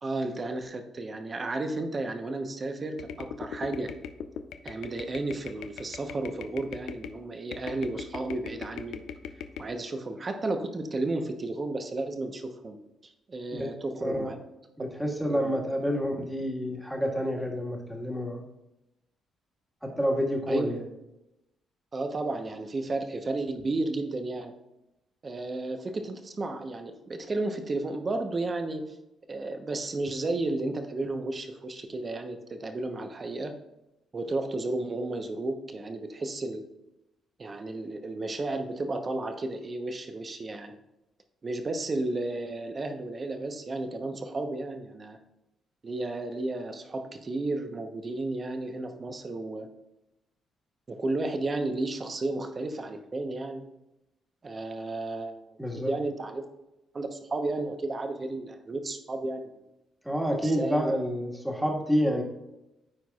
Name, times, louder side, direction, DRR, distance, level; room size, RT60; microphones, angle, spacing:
voice 1, 0.0-3.9 4.6-9.0 9.6-12.8 13.0-14.4 15.3-15.6 20.5-20.7 21.9-24.5 25.2-29.0 29.3-33.5 34.1-36.6 37.4-40.7 41.4-45.2 45.8-49.7 50.9-53.6 54.4-56.4 56.9-59.5 60.4-60.9, right 2 dB, 35° right, 6 dB, 0.9 m, -33 dB
sound 1, 3.0-7.2 7.5-9.7, left 7 dB, 85° left, 0.5 m, -40 dB
voice 2, 14.0-14.3 14.8-18.4 19.8-20.8 55.6-55.9 60.0-62.2, equal, 5° right, 0 dB, 1.6 m, -28 dB
13.0 x 4.7 x 2.4 m, 0.93 s
cardioid pair, 90°, 0 cm